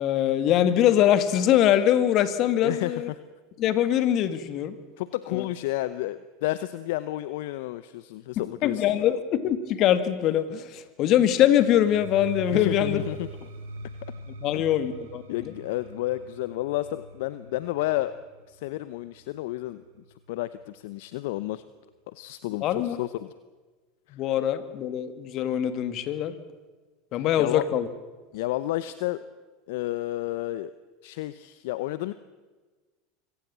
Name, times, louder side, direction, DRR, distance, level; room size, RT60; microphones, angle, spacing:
voice 1, 0.0-3.1 3.6-4.8 5.3-5.4 8.4-13.0 14.4-15.5 22.6-23.0 24.1-26.3 27.1-27.9, left 11 dB, 50° left, 12 dB, 1.9 m, -23 dB
voice 2, 2.6-3.2 5.0-9.1 12.5-13.3 14.5-14.7 15.3-18.2 18.5-19.8 20.3-21.6 22.1-23.3 24.1-24.2 27.1-27.6 28.3-29.2 29.7-30.7 31.0-32.1, left 16 dB, 70° left, 15 dB, 0.7 m, -31 dB
sound 1, 11.1-20.9, right 2 dB, 75° right, 2.8 m, -42 dB
25.0 x 17.0 x 7.4 m, 1.3 s
hypercardioid pair, 85°, 0 cm